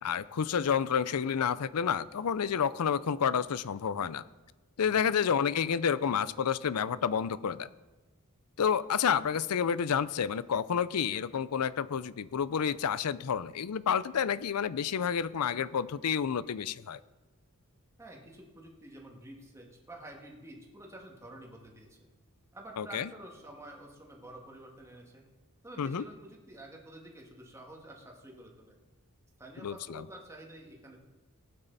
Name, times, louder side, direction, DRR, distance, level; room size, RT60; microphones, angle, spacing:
voice 1, 0.0-4.2 4.8-7.7 8.6-17.0 22.8-23.1 25.8-26.0 29.6-30.0, left 7 dB, 90° left, 17 dB, 0.5 m, -29 dB
voice 2, 4.8-5.1 18.0-22.0 22.5-25.2 25.6-28.8 29.4-31.0, right 1 dB, 15° right, 0 dB, 1.8 m, -49 dB
17.5 x 9.1 x 4.0 m, 1.2 s
head